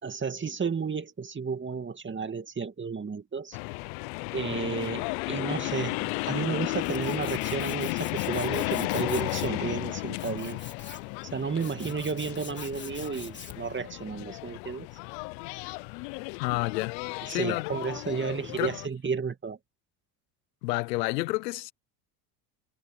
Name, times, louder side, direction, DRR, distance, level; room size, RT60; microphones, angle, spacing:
voice 1, 0.0-3.6 4.3-10.6 11.2-14.9 17.3-19.6, right 5 dB, 25° right, 2.3 m, -32 dB
sound 1, 3.5-18.9, left 27 dB, 70° left, 1.0 m, -34 dB
Tools, 6.3-13.8, left 4 dB, 20° left, 4.6 m, -46 dB
voice 2, 16.4-17.0 17.3-17.7 18.6-18.8 20.6-21.7, left 22 dB, 90° left, 0.7 m, -29 dB
supercardioid pair, 85°, 48 cm